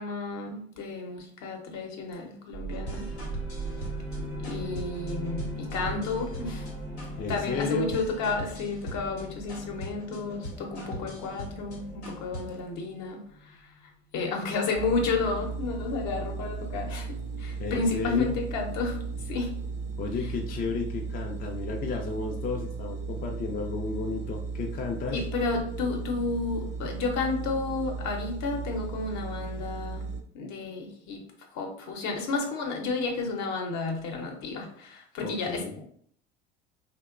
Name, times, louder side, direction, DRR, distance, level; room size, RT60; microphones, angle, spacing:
voice 1, 0.0-3.1 4.4-6.7 7.3-13.7 14.1-19.5 25.1-30.1 30.3-31.2 31.5-35.8, left 3 dB, 60° left, 2 dB, 0.8 m, -32 dB
sound 1, 2.5-13.9, right 2 dB, 70° right, 0.8 m, -39 dB
sound 2, 2.7-12.7, left 1 dB, 90° left, 0.8 m, -41 dB
voice 2, 7.2-8.0 17.6-18.4 20.0-25.2 35.2-35.7, left 4 dB, 30° left, 1 dB, 0.4 m, -33 dB
sound 3, 14.7-30.2, right 4 dB, 35° right, 0.5 m, -36 dB
2.8 x 2.1 x 2.4 m, 0.62 s
hypercardioid pair, 70°, 32 cm